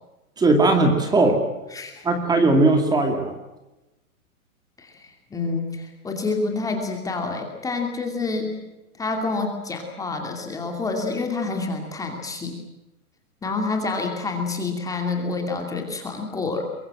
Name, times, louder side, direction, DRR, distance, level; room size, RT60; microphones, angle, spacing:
voice 1, 0.4-1.4 2.0-3.3, right 2 dB, 10° right, 5 dB, 2.4 m, -18 dB
voice 2, 1.7-2.0 4.8-8.6 9.0-12.5 13.4-16.6, left 3 dB, 10° left, 2 dB, 2.6 m, -28 dB
23.5 x 23.0 x 7.7 m, 0.99 s
hypercardioid pair, 155°, 44 cm